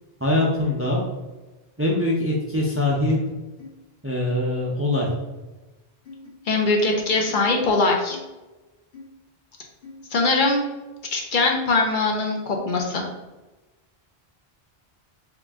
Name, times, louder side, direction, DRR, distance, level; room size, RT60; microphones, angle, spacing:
voice 1, 0.2-1.0 1.8-3.2 4.0-5.1, left 1 dB, 20° right, -3 dB, 0.3 m, -22 dB
sound 1, 3.6-3.7 4.3-4.4 4.9-5.1 6.1-6.3 7.3-7.4 8.1-8.3 8.9-9.1 9.8-10.0, left 4 dB, 75° left, 1.3 m, -42 dB
voice 2, 6.5-8.2 10.1-10.6 11.1-13.1, left 3 dB, 60° left, 1 dB, 0.7 m, -21 dB
3.7 x 2.4 x 3.4 m, 1.1 s
omnidirectional pair, 1.0 m